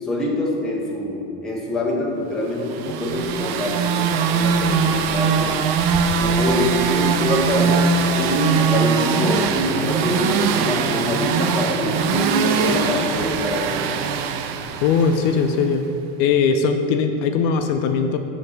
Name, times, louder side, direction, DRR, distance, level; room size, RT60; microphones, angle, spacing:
voice 1, 0.0-5.6 6.1-7.9 8.2-14.0, left 1 dB, ahead, -5 dB, 0.5 m, -24 dB
sound 1, 2.6-15.6, right 6 dB, 65° right, 0.5 m, -21 dB
voice 2, 14.8-15.8 16.2-18.2, left 5 dB, 55° left, 6 dB, 0.4 m, -19 dB
7.8 x 3.4 x 5.2 m, 2.7 s
cardioid pair, 175°, 32 cm